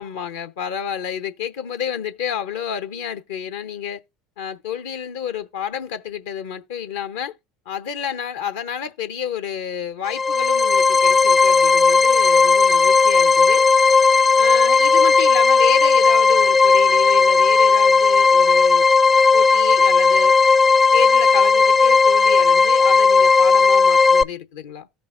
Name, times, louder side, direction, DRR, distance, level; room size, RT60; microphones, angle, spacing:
voice 1, 0.0-4.0 4.4-7.4 7.7-13.7 14.3-18.9 19.3-20.4 20.9-24.9, left 8 dB, 80° left, 0.8 m, -30 dB
sound 1, 10.0-24.2, left 4 dB, 25° left, 0.5 m, -15 dB
14.0 x 5.3 x 2.6 m
hypercardioid pair, 80°, 0 cm